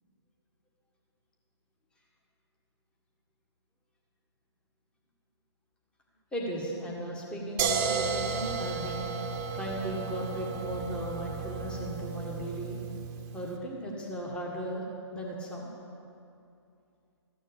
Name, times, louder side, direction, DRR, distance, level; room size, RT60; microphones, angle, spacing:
voice 1, 6.3-9.0 9.5-12.8 13.3-14.9 15.1-15.7, equal, 5° left, -2 dB, 1.5 m, -36 dB
sound 1, 7.6-13.4, right 5 dB, 20° right, 1.1 m, -33 dB
14.0 x 9.6 x 7.1 m, 2.5 s
hypercardioid pair, 150°, 15 cm